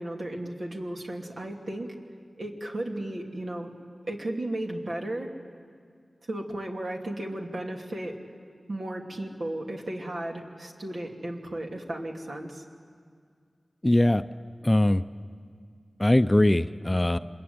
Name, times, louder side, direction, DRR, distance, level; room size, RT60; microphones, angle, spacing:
voice 1, 0.0-1.9 2.4-3.7 4.1-5.3 6.3-8.2 8.7-12.6, right 1 dB, 65° right, 0 dB, 2.8 m, -34 dB
voice 2, 13.8-14.2 14.6-15.0 16.0-17.2, left 1 dB, 20° left, 11 dB, 0.6 m, -21 dB
26.0 x 22.0 x 9.6 m, 2.1 s
cardioid pair, 50°, 0 cm